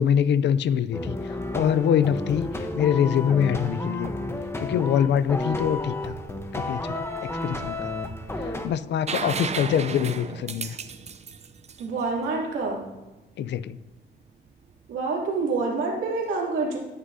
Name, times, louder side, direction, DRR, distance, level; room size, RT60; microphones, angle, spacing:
voice 1, 0.0-4.1 4.6-6.2 6.5-7.9 8.5-10.8 13.4-13.8, left 9 dB, 65° left, 15 dB, 0.5 m, -24 dB
sound 1, 0.9-8.7, left 2 dB, 10° left, 1.0 m, -31 dB
sound 2, 9.1-12.8 14.6-14.7, right 6 dB, 35° right, 0.6 m, -33 dB
voice 2, 11.8-12.8 14.9-16.8, right 3 dB, 75° right, -3 dB, 2.8 m, -27 dB
18.0 x 6.3 x 2.8 m, 1.1 s
cardioid pair, 90°, 20 cm